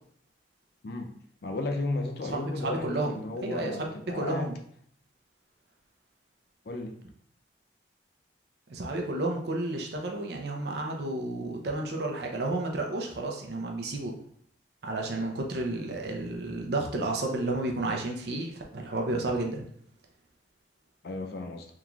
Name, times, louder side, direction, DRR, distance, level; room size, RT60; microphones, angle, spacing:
voice 1, 0.8-1.2 1.4-4.6 6.7-7.0 21.0-21.7, left 2 dB, 55° left, 4 dB, 0.5 m, -34 dB
voice 2, 2.2-3.9 4.1-4.6 8.7-14.2 14.8-19.6, right 2 dB, 60° right, 1 dB, 0.6 m, -31 dB
3.6 x 3.0 x 2.4 m, 0.63 s
head